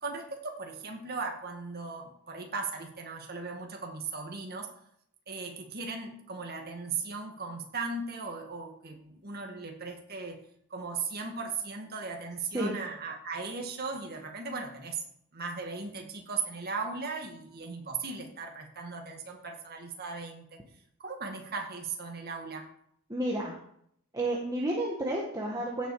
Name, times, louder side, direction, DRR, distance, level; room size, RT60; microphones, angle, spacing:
voice 1, 0.0-4.7 5.3-10.4 10.7-15.0 15.3-20.5 21.0-22.7, right 4 dB, 45° right, 3 dB, 2.0 m, -37 dB
voice 2, 23.1-23.5 24.1-25.9, right 1 dB, 15° right, -3 dB, 1.6 m, -31 dB
16.0 x 7.2 x 4.9 m, 0.71 s
head